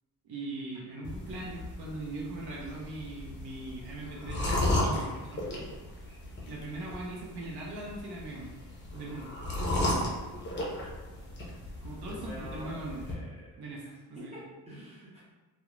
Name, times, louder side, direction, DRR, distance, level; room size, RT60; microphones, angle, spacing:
voice 1, 0.2-4.4 4.8-5.6 6.5-8.6 8.9-9.3 11.8-13.0 13.6-13.8 14.1-14.4, right 2 dB, 85° right, -3 dB, 0.6 m, -40 dB
sound 1, 1.0-13.1, left 1 dB, 30° left, 0.5 m, -35 dB
voice 2, 12.0-13.5 13.8-15.2, right 1 dB, 15° right, -7 dB, 0.6 m, -47 dB
2.4 x 2.1 x 2.9 m, 1.2 s
cardioid pair, 170°, 37 cm